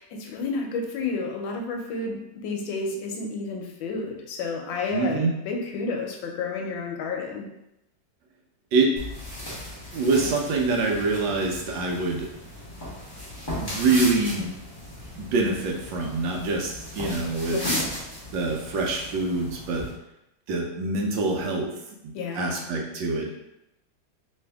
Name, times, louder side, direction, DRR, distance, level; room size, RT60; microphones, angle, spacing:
voice 1, 0.0-7.5 17.5-18.0 22.1-22.6, left 4 dB, 80° left, 2 dB, 1.3 m, -31 dB
voice 2, 4.9-5.3 8.7-8.9 9.9-12.3 13.5-14.5 15.2-17.6 18.3-19.8 20.5-21.7 22.3-23.4, right 3 dB, 75° right, 0 dB, 1.3 m, -25 dB
sound 1, 9.0-19.9, equal, 20° left, 0.6 m, -36 dB
3.2 x 2.7 x 3.4 m, 0.88 s
omnidirectional pair, 2.1 m